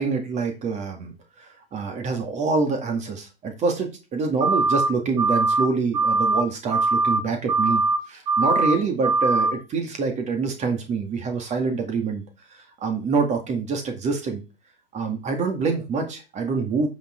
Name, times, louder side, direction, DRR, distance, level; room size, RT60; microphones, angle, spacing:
voice 1, 0.0-12.2 12.5-14.4 14.9-16.9, right 4 dB, 25° right, 4 dB, 2.3 m, -26 dB
sound 1, 4.4-4.9 5.2-5.7 5.9-6.4 6.7-7.2 7.5-8.0 8.3-8.7 9.0-9.5, right 3 dB, 45° right, 2.7 m, -21 dB
8.6 x 6.3 x 4.6 m, 0.30 s
figure-of-eight pair, 100°, 30 cm